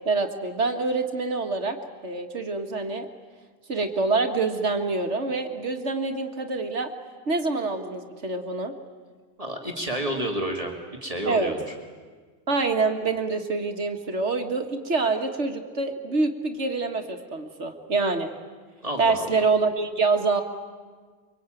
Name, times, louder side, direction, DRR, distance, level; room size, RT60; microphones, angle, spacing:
voice 1, 0.1-1.8 2.0-3.1 3.7-6.9 7.3-8.7 11.3-11.5 12.5-18.3 19.0-20.4, right 3 dB, 75° right, 6 dB, 2.0 m, -26 dB
voice 2, 9.4-10.7 11.0-11.6 18.8-19.3, right 1 dB, 30° right, 2 dB, 2.4 m, -30 dB
24.5 x 23.5 x 9.1 m, 1.5 s
omnidirectional pair, 1.2 m